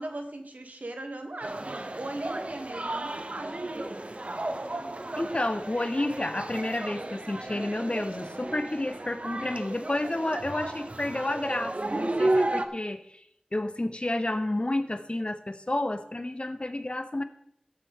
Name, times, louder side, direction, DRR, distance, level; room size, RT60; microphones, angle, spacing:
voice 1, 0.0-4.6 11.9-12.4, right 2 dB, 80° right, 5 dB, 1.4 m, -38 dB
sound 1, 1.4-12.7, right 1 dB, 55° right, 0.8 m, -33 dB
voice 2, 5.2-13.2 13.5-17.2, left 1 dB, 45° left, 10 dB, 0.8 m, -30 dB
14.5 x 7.7 x 3.6 m, 0.74 s
wide cardioid pair, 50°, 3 cm